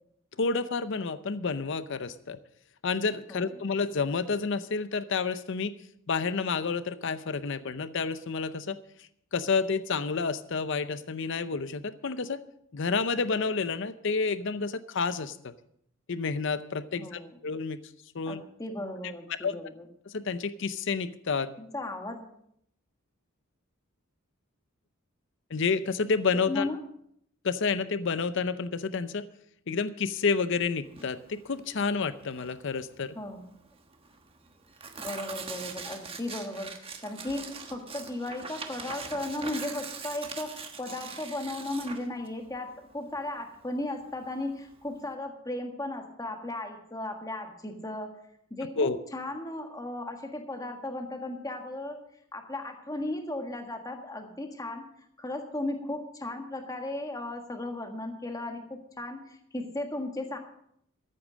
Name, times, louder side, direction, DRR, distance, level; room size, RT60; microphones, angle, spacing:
voice 1, 0.4-2.4 2.8-5.8 6.1-12.4 12.7-15.5 16.1-17.8 18.1-18.4 19.4-19.7 20.1-21.5 25.5-26.7 27.4-29.3 29.7-33.2 48.8-49.0, left 4 dB, 60° left, 13 dB, 0.6 m, -30 dB
voice 2, 16.9-17.4 18.3-19.9 21.6-22.3 26.5-26.8 33.1-33.4 35.0-48.2 48.5-52.0 52.3-54.8 55.2-60.4, left 1 dB, 15° left, 4 dB, 1.6 m, -36 dB
Tearing, 30.9-45.1, right 5 dB, 25° right, 1.3 m, -43 dB
14.0 x 8.6 x 6.3 m, 0.71 s
head